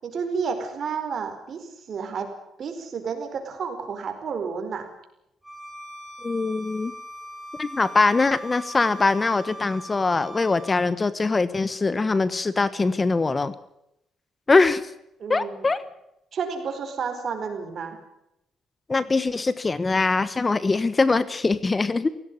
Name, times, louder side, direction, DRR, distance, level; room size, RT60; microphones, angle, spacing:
voice 1, 0.0-2.3 2.6-4.9 15.2-15.6 16.3-18.0, right 6 dB, 55° right, 6 dB, 4.6 m, -31 dB
Bowed string instrument, 5.4-10.9, equal, ahead, 7.3 m, -40 dB
voice 2, 6.2-6.9 7.6-13.5 14.5-14.8 15.3-15.8 18.9-22.1, left 3 dB, 25° left, 16 dB, 1.1 m, -22 dB
17.5 x 16.5 x 9.8 m, 0.83 s
cardioid pair, 90°, 0 cm